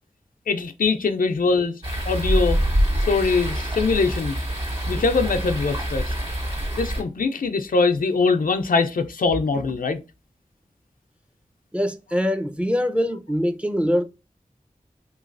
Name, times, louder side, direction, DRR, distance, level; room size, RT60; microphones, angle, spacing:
voice 1, 0.5-2.6 3.1-4.4 4.9-6.1 6.7-10.0, left 4 dB, 85° left, 0.4 m, -22 dB
sound 1, 1.8-7.0, equal, 40° right, 1.5 m, -25 dB
voice 2, 11.7-14.0, equal, 10° right, 0.5 m, -23 dB
3.2 x 3.0 x 2.5 m
wide cardioid pair, 50°, 14 cm